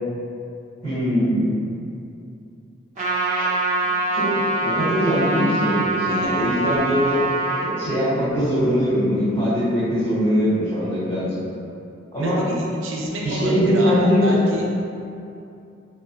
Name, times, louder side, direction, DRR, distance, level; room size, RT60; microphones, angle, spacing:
voice 1, 0.8-1.5 3.4-3.5 4.1-7.3 7.5-11.3 12.1-12.4 13.2-14.3, equal, 30° left, -15 dB, 1.3 m, -21 dB
Trumpet, 3.0-7.7, right 2 dB, 35° right, 0.9 m, -24 dB
voice 2, 6.1-6.5 12.2-14.6, equal, 70° right, -3 dB, 0.5 m, -29 dB
4.3 x 2.3 x 2.3 m, 2.6 s
head